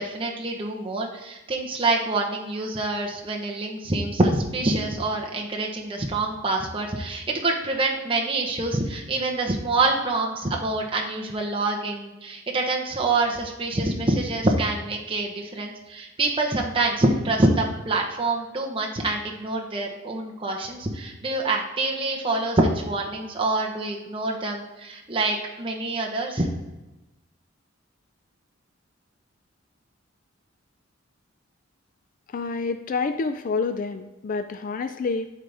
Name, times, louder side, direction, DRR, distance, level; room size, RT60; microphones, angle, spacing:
voice 1, 0.0-26.5, right 2 dB, 25° right, 0 dB, 0.9 m, -26 dB
voice 2, 32.3-35.3, left 4 dB, 40° left, 9 dB, 0.3 m, -28 dB
11.5 x 4.1 x 3.3 m, 1.1 s
head